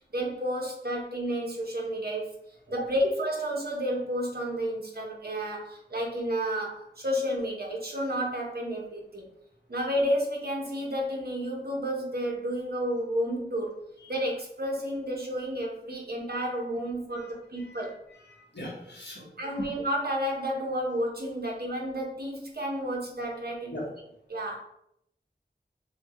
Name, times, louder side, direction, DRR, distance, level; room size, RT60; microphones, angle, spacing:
voice 1, 0.1-2.4 2.7-9.3 9.7-13.7 14.1-18.0 19.4-23.8 24.3-24.6, equal, 60° right, -1 dB, 1.2 m, -31 dB
voice 2, 17.6-17.9 18.3-19.3 23.7-23.9, left 1 dB, 80° left, -4 dB, 1.4 m, -40 dB
6.9 x 2.4 x 3.1 m, 0.77 s
wide cardioid pair, 45°, 18 cm